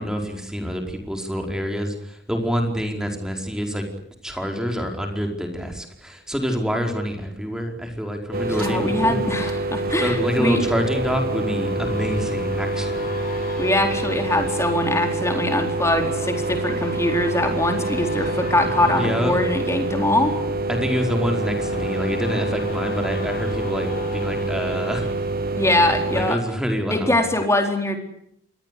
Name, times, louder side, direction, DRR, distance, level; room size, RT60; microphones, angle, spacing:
voice 1, 0.0-3.9 4.2-9.2 9.9-13.1 18.9-19.3 20.7-25.1 26.1-27.2, equal, 5° right, 3 dB, 4.8 m, -26 dB
sound 1, 8.3-26.4, right 2 dB, 45° right, 1.2 m, -26 dB
voice 2, 8.4-10.6 13.6-20.4 25.6-26.4 26.9-28.0, left 1 dB, 15° left, 5 dB, 4.3 m, -22 dB
sound 2, 9.3-26.4 26.9-27.0, left 2 dB, 40° left, 7.6 m, -39 dB
27.5 x 22.0 x 8.5 m, 0.71 s
head